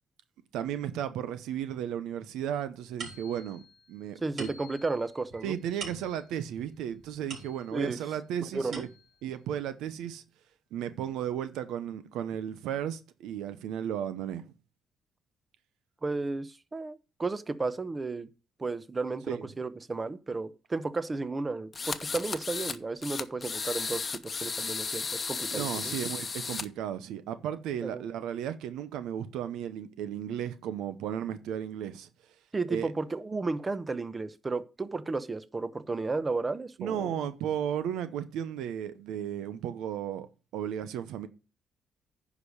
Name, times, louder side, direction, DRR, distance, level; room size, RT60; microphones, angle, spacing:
voice 1, 0.5-3.6 3.9-4.5 5.4-8.9 9.2-10.2 10.7-14.5 19.3-19.5 25.5-32.4 32.7-32.9 36.8-40.3 40.5-41.3, right 9 dB, 90° right, 0.8 m, -34 dB
Mysounds LG-FR Iris-diapason, 3.0-8.0 8.4-9.3, right 3 dB, 65° right, 5.1 m, -46 dB
voice 2, 4.2-5.5 7.7-8.0 8.5-8.8 16.0-18.3 18.6-25.9 27.8-28.0 32.5-37.1, right 3 dB, 25° right, 0.9 m, -33 dB
sound 1, 21.7-22.8 23.0-26.6, left 5 dB, 35° left, 0.9 m, -34 dB
9.8 x 5.1 x 6.5 m
cardioid pair, 90°, 0 cm